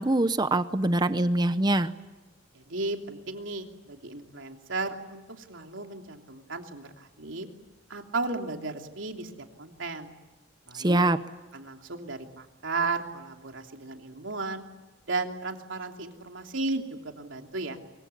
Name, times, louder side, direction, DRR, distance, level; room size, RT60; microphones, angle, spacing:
voice 1, 0.0-1.9 10.7-11.2, right 2 dB, 20° right, 12 dB, 0.8 m, -24 dB
voice 2, 2.5-7.5 7.9-9.3 9.6-10.1 10.7-11.0 11.5-14.6 15.1-17.8, right 3 dB, 85° right, 3 dB, 3.1 m, -34 dB
25.0 x 23.5 x 8.5 m, 1.1 s
head